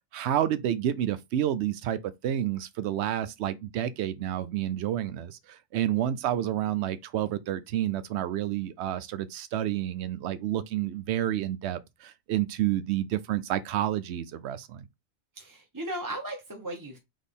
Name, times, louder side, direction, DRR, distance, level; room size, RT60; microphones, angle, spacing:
voice 1, 0.1-14.9, right 11 dB, 80° right, 0.9 m, -29 dB
voice 2, 15.4-17.0, right 1 dB, 20° right, 1.0 m, -36 dB
4.2 x 3.5 x 3.5 m
omnidirectional pair, 1.1 m